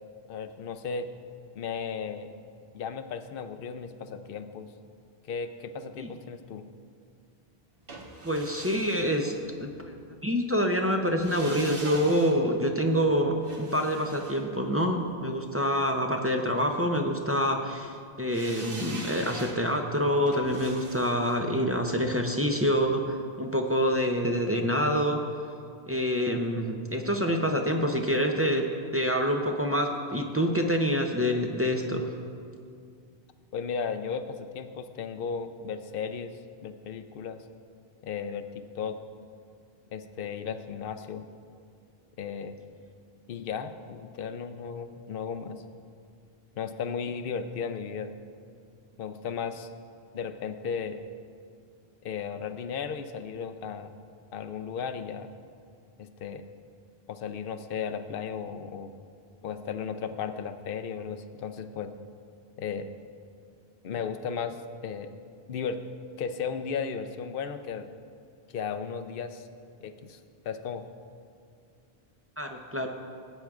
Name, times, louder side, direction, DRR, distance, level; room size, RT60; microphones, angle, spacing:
voice 1, 0.3-1.1 1.5-2.3 2.7-4.7 5.2-6.6 33.5-37.4 38.0-39.0 39.9-41.2 42.2-42.6 43.3-45.6 46.6-48.1 49.0-49.7 50.1-51.0 52.0-53.9 54.3-55.3 56.0-56.4 57.1-58.9 59.4-61.9 62.6-62.9 63.8-64.6 64.8-65.1 65.5-65.8 66.2-68.0 68.5-69.5 69.8-70.2 70.4-70.9, left 6 dB, 65° left, 9 dB, 0.7 m, -35 dB
sound 1, 7.9-10.0 11.0-15.3 18.3-23.3 23.6-23.7, right 2 dB, 65° right, 1.3 m, -44 dB
voice 2, 8.2-9.3 9.6-9.9 10.2-25.2 25.9-28.6 28.9-32.1 72.4-72.9, equal, 20° right, 2 dB, 0.4 m, -26 dB
17.5 x 8.8 x 2.4 m, 2.3 s
omnidirectional pair, 1.0 m